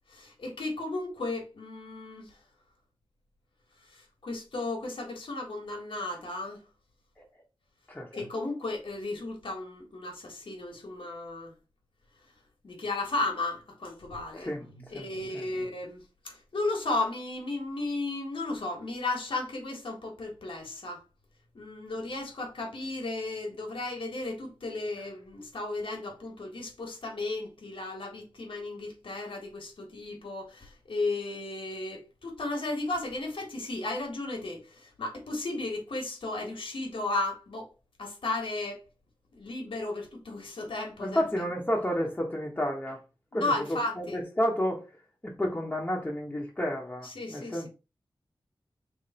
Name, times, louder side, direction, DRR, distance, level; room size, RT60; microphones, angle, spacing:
voice 1, 0.1-2.4 3.9-6.6 8.1-11.5 12.6-21.0 21.5-37.7 38.0-38.8 39.3-41.3 43.3-44.2 47.0-47.7, left 2 dB, 75° left, 1.6 m, -34 dB
voice 2, 41.0-43.0 43.3-43.4 43.7-44.8 45.2-47.7, equal, 20° left, 1.1 m, -30 dB
3.4 x 3.2 x 4.3 m
wide cardioid pair, 95°, 9 cm